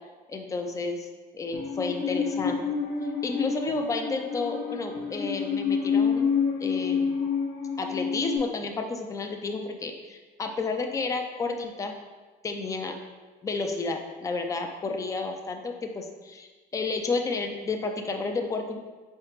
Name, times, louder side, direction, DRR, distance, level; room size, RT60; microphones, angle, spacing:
voice 1, 0.3-1.1 1.3-2.6 3.2-7.1 7.8-11.9 12.4-13.0 13.4-18.8, left 3 dB, 20° left, 4 dB, 0.4 m, -31 dB
Musical instrument, 1.5-8.4, left 6 dB, 70° left, 0.8 m, -28 dB
4.7 x 3.2 x 3.1 m, 1.3 s
cardioid pair, 110°, 17 cm